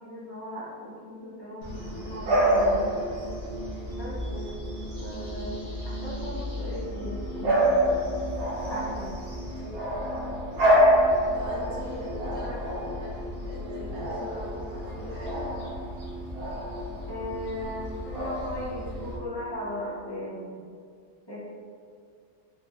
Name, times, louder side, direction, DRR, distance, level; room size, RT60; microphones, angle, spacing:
voice 1, 0.0-2.9 3.9-4.2 5.0-7.9 8.7-9.2 11.6-11.8 17.1-20.6 21.3-21.4, left 1 dB, 40° left, -9 dB, 0.3 m, -37 dB
Bark / Bird vocalization bird call bird song, 1.6-19.2, equal, 80° right, 1.3 m, -28 dB
sound 1, 1.7-20.1, right 1 dB, 65° left, 0.7 m, -41 dB
voice 2, 4.2-4.6 9.6-9.8 11.3-15.4, right 1 dB, 60° right, -9 dB, 1.1 m, -41 dB
3.9 x 2.2 x 2.9 m, 2.1 s
omnidirectional pair, 1.7 m